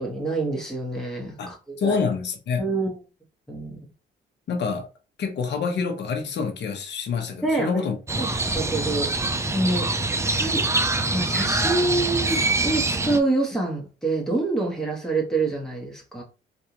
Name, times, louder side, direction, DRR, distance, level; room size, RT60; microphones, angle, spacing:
voice 1, 0.0-2.0 2.6-3.0 3.5-3.8 7.4-7.8 8.2-9.1 9.5-9.9 10.3-10.6 11.1-16.2, right 2 dB, 5° left, 1.4 m, -26 dB
voice 2, 1.4-2.6 4.5-4.9 5.2-8.0 9.7-9.8, left 5 dB, 60° left, 1.0 m, -27 dB
Crow, 8.1-13.2, right 2 dB, 15° right, 0.4 m, -24 dB
3.4 x 2.6 x 2.9 m
cardioid pair, 90°, 20 cm